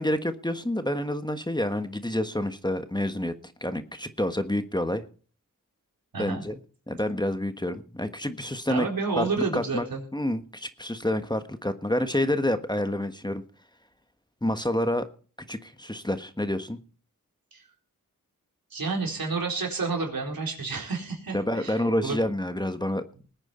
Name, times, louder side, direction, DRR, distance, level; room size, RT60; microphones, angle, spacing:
voice 1, 0.0-3.3 3.6-5.0 6.2-6.6 6.9-8.9 9.2-9.8 10.1-13.4 14.4-15.1 15.5-16.8 21.3-23.0, left 1 dB, 10° left, 9 dB, 1.4 m, -28 dB
voice 2, 6.1-6.4 8.7-10.0 17.5-17.6 18.7-22.2, right 4 dB, 85° right, 1 dB, 4.2 m, -30 dB
20.5 x 9.1 x 4.4 m, 0.41 s
cardioid pair, 45°, 34 cm